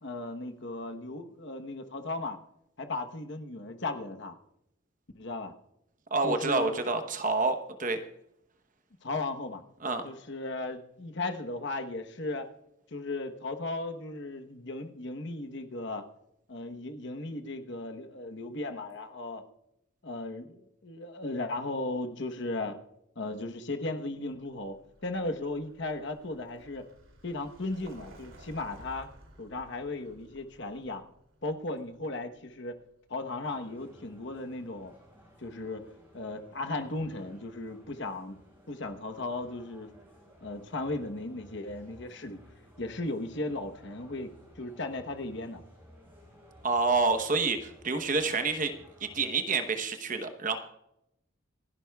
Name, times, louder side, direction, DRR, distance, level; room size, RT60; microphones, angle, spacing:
voice 1, 0.0-2.4 2.8-4.4 5.1-5.5 6.2-6.8 9.0-9.6 10.0-12.5 12.9-16.0 16.5-19.4 20.0-22.8 23.2-24.8 25.0-26.9 27.2-29.1 29.4-31.0 31.4-32.8 33.1-34.9 35.4-38.4 38.7-39.9 40.4-42.4 42.8-45.6, left 2 dB, 55° left, 6 dB, 1.1 m, -36 dB
voice 2, 6.1-8.0 9.8-10.0 46.6-48.7 49.0-50.6, right 3 dB, 40° right, 7 dB, 1.0 m, -28 dB
Vehicle, 24.3-33.1, right 1 dB, 70° right, 2.8 m, -55 dB
sound 1, 33.4-49.3, equal, 10° right, 5.3 m, -56 dB
27.5 x 11.0 x 2.3 m, 0.81 s
head